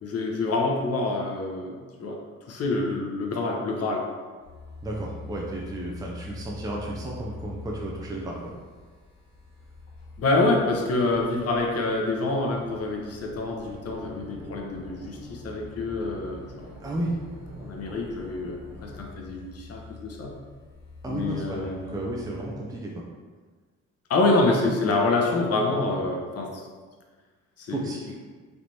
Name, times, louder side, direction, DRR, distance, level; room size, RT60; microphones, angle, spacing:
voice 1, 0.0-2.2 2.5-4.1 10.2-16.7 17.6-20.3 21.1-22.0 24.1-26.7 27.6-27.8, left 2 dB, 55° left, 0 dB, 0.9 m, -26 dB
sound 1, 4.4-22.5, left 3 dB, 85° left, 1.4 m, -45 dB
voice 2, 4.8-8.5 16.8-17.2 21.0-23.0 27.7-28.2, right 1 dB, 10° right, -3 dB, 0.5 m, -33 dB
sound 2, 13.6-19.0, equal, 65° right, 1.0 m, -45 dB
3.4 x 3.0 x 4.0 m, 1.4 s
cardioid pair, 90°, 30 cm